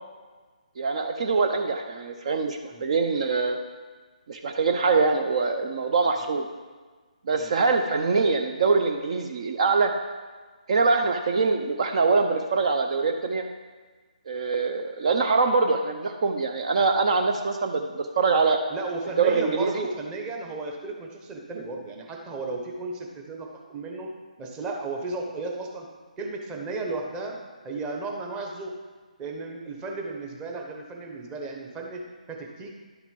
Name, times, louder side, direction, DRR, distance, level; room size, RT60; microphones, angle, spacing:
voice 1, 0.8-3.6 4.3-6.5 7.3-9.9 10.7-13.4 14.3-18.6 19.2-19.8, right 4 dB, 50° right, 5 dB, 0.7 m, -24 dB
voice 2, 18.7-24.1 24.4-25.9 26.2-27.4 27.6-28.8 29.2-32.7, right 3 dB, 15° right, 1 dB, 1.1 m, -34 dB
11.0 x 6.1 x 5.3 m, 1.4 s
figure-of-eight pair, 150°, 4 cm